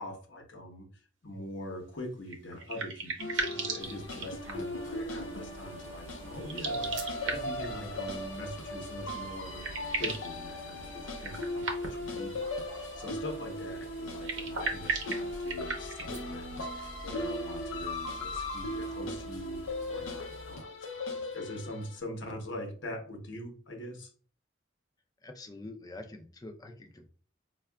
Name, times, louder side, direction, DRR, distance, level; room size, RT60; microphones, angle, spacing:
voice 1, 0.0-19.6 19.9-24.1, left 1 dB, 70° left, 3 dB, 0.9 m, -43 dB
sound 1, 2.3-4.8 6.4-7.7 9.0-9.1 9.4-10.3 11.2-12.1 14.1-16.2, right 4 dB, 70° right, 0.7 m, -36 dB
sound 2, 3.2-21.9, left 1 dB, 85° left, 0.5 m, -38 dB
sound 3, 3.8-20.6, equal, 40° right, 0.7 m, -49 dB
voice 2, 25.2-27.1, left 2 dB, 20° left, 5 dB, 0.4 m, -46 dB
4.5 x 2.3 x 2.2 m, 0.40 s
head